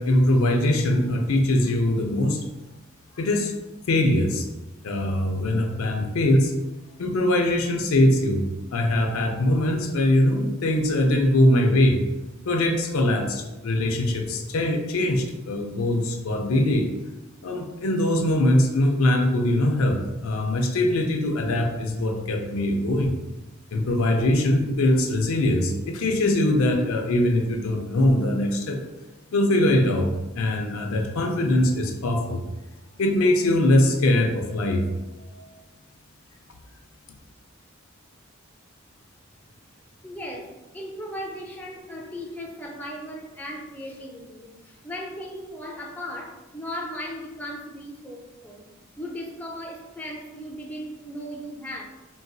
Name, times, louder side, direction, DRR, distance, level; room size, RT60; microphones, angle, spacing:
voice 1, 0.0-2.4 3.1-3.5 3.9-4.5 4.8-6.5 7.0-8.5 8.7-12.0 12.5-16.9 17.4-23.1 23.7-28.8 29.3-30.1 30.4-32.4 33.0-35.6, left 1 dB, 85° left, 3 dB, 0.5 m, -22 dB
voice 2, 40.0-48.7 49.0-51.8, equal, 10° left, 0 dB, 0.4 m, -37 dB
3.9 x 2.2 x 2.6 m, 1.1 s
head